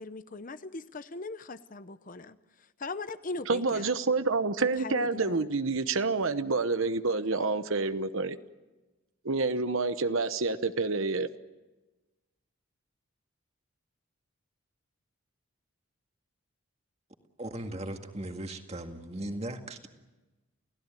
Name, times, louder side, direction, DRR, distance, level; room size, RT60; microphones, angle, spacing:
voice 1, 0.0-2.4 2.8-3.9 4.8-5.5, left 3 dB, 40° left, 0.7 m, -40 dB
voice 2, 3.5-8.4 9.2-11.3, right 3 dB, 65° right, 1.0 m, -28 dB
voice 3, 17.4-19.9, right 1 dB, 30° right, 2.0 m, -38 dB
29.0 x 16.5 x 9.2 m
head